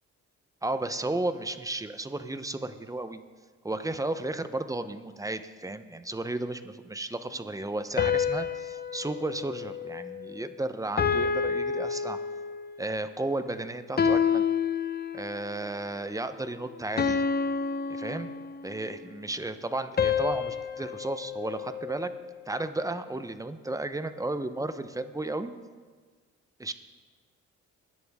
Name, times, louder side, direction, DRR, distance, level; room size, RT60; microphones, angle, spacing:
voice 1, 0.6-3.2 3.6-12.2 12.8-14.4 15.1-17.2 17.9-18.3 18.6-22.1 22.5-25.5 26.6-26.7, right 2 dB, 10° right, 10 dB, 0.8 m, -33 dB
sound 1, 8.0-10.5 11.0-12.7 14.0-15.5 17.0-18.8 20.0-22.3, left 6 dB, 30° left, 0.8 m, -29 dB
20.0 x 10.5 x 3.6 m, 1.5 s
cardioid pair, 90°, 30 cm